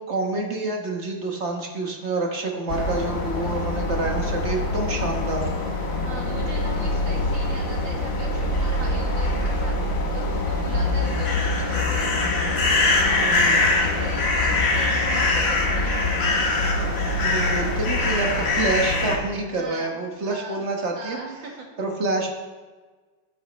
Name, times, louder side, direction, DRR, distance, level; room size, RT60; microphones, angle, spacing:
voice 1, 0.0-5.5 10.8-11.0 13.2-13.6 17.2-21.2 21.8-22.3, right 2 dB, 40° right, 1 dB, 1.3 m, -27 dB
sound 1, 2.7-19.2, left 2 dB, 45° left, 1.5 m, -23 dB
voice 2, 6.0-12.2 13.0-16.0 19.5-21.7, right 3 dB, 60° right, 0 dB, 2.4 m, -39 dB
13.0 x 9.2 x 3.3 m, 1.4 s
omnidirectional pair, 2.3 m